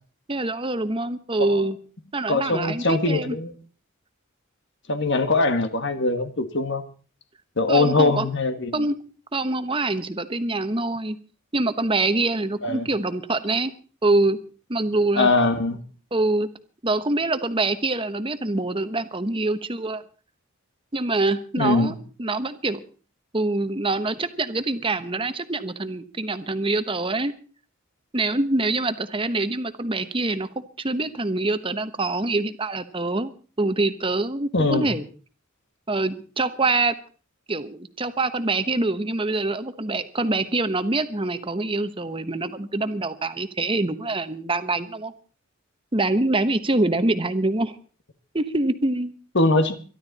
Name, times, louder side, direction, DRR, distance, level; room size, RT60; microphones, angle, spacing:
voice 1, 0.3-1.8 2.1-3.4 7.7-8.3 8.7-8.9 9.3-11.2 11.5-13.7 14.0-14.4 14.7-15.3 16.1-16.5 16.8-20.0 20.9-21.9 22.2-22.8 23.3-27.3 28.1-30.5 30.8-33.3 33.6-35.0 35.9-36.9 37.5-45.1 45.9-47.7 48.3-49.1, right 2 dB, 25° right, 1.1 m, -25 dB
voice 2, 2.3-3.5 4.9-6.8 7.6-8.9 12.6-12.9 15.2-15.8 21.6-22.0 34.5-34.9 49.4-49.8, left 2 dB, 60° left, 1.7 m, -22 dB
23.5 x 12.0 x 4.2 m
head